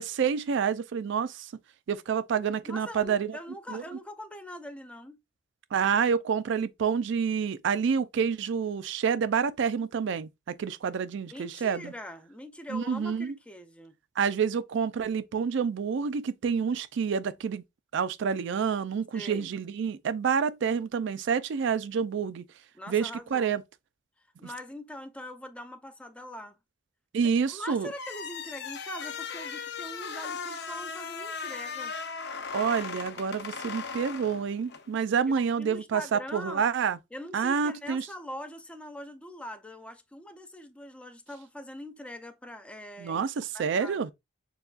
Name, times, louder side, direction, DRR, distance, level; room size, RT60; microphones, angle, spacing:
voice 1, 0.0-1.5 1.9-3.4 3.7-3.8 5.7-11.9 12.7-13.3 14.2-17.6 17.9-22.4 22.9-23.6 27.1-27.9 32.5-37.0 37.3-38.1 43.0-44.1, right 6 dB, 70° right, 0.4 m, -28 dB
voice 2, 2.6-5.2 11.3-13.9 19.1-19.5 22.7-23.6 24.2-26.6 27.5-31.9 35.4-36.7 37.1-43.3 43.5-44.1, left 1 dB, 5° left, 0.5 m, -43 dB
sound 1, 27.9-34.9, left 5 dB, 60° left, 0.6 m, -38 dB
6.8 x 2.3 x 2.4 m
head